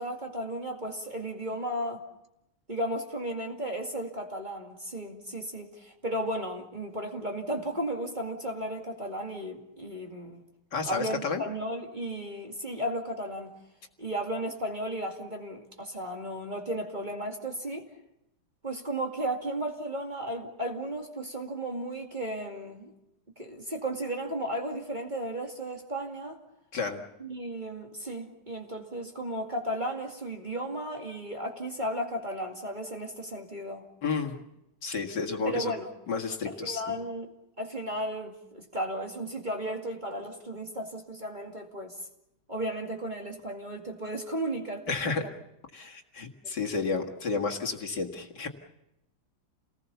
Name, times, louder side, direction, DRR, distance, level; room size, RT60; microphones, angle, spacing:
voice 1, 0.0-2.0 2.7-10.4 10.9-13.5 14.0-17.9 18.6-22.9 23.4-26.4 27.2-33.9 35.4-35.9 36.4-37.3 37.6-41.9 42.5-44.9, right 1 dB, 20° right, 2 dB, 2.3 m, -34 dB
voice 2, 10.7-11.4 26.7-27.0 34.0-34.4 34.8-35.7 36.1-36.8 44.9-45.2 45.7-48.5, left 4 dB, 55° left, 2 dB, 2.5 m, -31 dB
29.0 x 19.5 x 6.9 m, 0.87 s
omnidirectional pair, 2.2 m